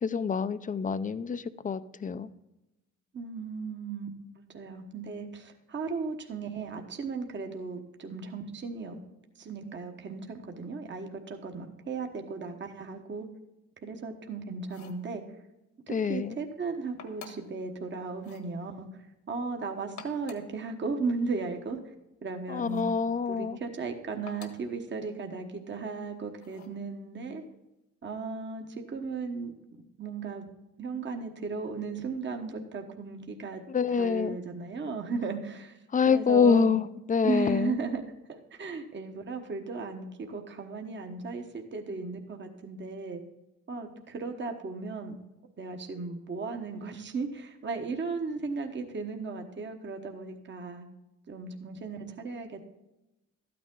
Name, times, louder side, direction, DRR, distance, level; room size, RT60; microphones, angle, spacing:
voice 1, 0.0-2.3 15.9-16.4 22.5-23.6 33.7-34.4 35.9-37.8, left 6 dB, 25° left, 14 dB, 0.5 m, -26 dB
voice 2, 3.1-4.1 4.5-9.0 9.4-13.3 13.8-15.2 15.9-21.8 22.2-22.8 23.3-27.4 28.0-29.5 30.0-30.4 30.8-33.6 34.0-35.8 36.1-36.8 37.2-38.0 38.3-43.2 43.7-45.2 45.6-50.9 51.3-52.7, right 4 dB, 40° right, 4 dB, 1.2 m, -36 dB
sound 1, 14.6-15.1 17.0-17.6 18.2-18.5 19.8-20.6 22.6-23.0 24.3-24.7 26.4-26.8, left 6 dB, 65° left, 1.5 m, -49 dB
12.5 x 9.3 x 3.8 m, 0.94 s
cardioid pair, 90°, 30 cm